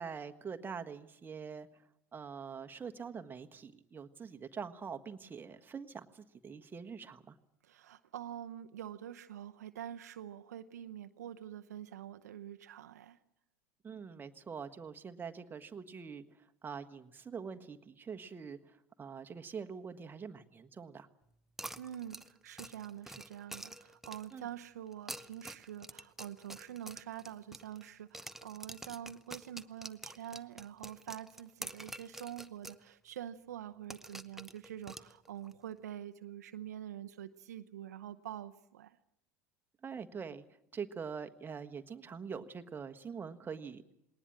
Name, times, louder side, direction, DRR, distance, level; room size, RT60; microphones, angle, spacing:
voice 1, 0.0-1.7 2.1-7.3 13.8-16.2 16.6-21.1 24.3-24.5 39.8-40.4 40.7-43.8, right 6 dB, 25° right, 7 dB, 1.4 m, -44 dB
voice 2, 7.6-13.2 21.8-39.0, right 11 dB, 75° right, 9 dB, 0.8 m, -46 dB
sound 1, 21.6-24.4 24.9-27.9 28.1-32.8 33.1-33.2 33.9-35.5, right 1 dB, 5° right, 0.8 m, -47 dB
20.0 x 19.0 x 8.8 m, 0.78 s
hypercardioid pair, 80°, 9 cm